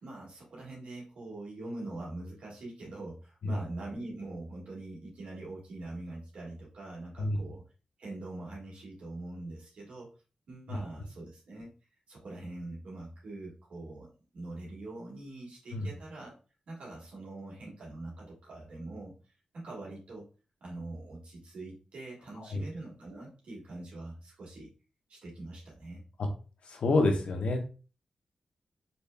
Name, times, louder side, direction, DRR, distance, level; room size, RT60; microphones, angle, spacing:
voice 1, 0.0-7.6 8.0-10.1 10.5-11.7 12.1-16.3 16.7-20.2 20.6-24.7 25.1-26.0, right 2 dB, 80° right, -4 dB, 1.7 m, -43 dB
voice 2, 26.6-27.6, left 2 dB, 75° left, 4 dB, 0.8 m, -28 dB
4.1 x 3.3 x 2.2 m, 0.35 s
cardioid pair, 65°, 2 cm